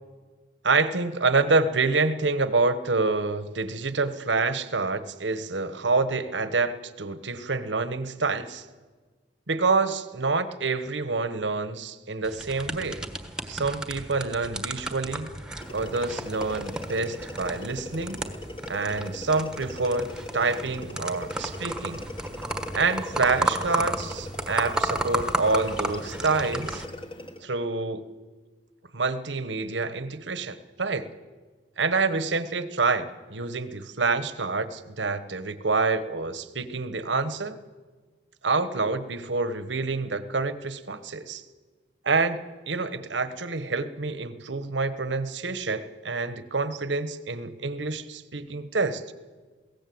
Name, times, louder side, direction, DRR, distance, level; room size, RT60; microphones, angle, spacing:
voice 1, 0.6-8.6 9.5-13.0 13.5-15.3 15.7-18.2 18.7-22.0 22.7-26.8 27.4-28.0 28.9-31.1 31.8-37.6 38.4-41.4 42.0-42.4 42.7-49.0, right 3 dB, 80° right, 12 dB, 1.3 m, -27 dB
sound 1, 12.2-26.8, right 1 dB, 5° right, 1.3 m, -33 dB
sound 2, 15.6-27.5, left 1 dB, 30° left, 1.6 m, -41 dB
22.5 x 17.0 x 7.9 m, 1.4 s
head